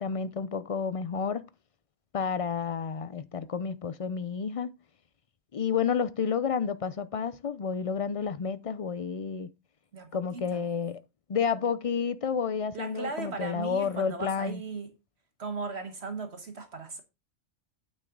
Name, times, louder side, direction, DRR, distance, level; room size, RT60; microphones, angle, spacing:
voice 1, 0.0-1.4 2.1-4.7 5.5-9.5 10.1-11.0 11.3-14.6, left 6 dB, 55° left, 0.4 m, -30 dB
voice 2, 9.9-10.6 12.7-14.9 15.4-17.0, right 4 dB, 55° right, 1.4 m, -37 dB
9.0 x 6.3 x 3.8 m
omnidirectional pair, 1.3 m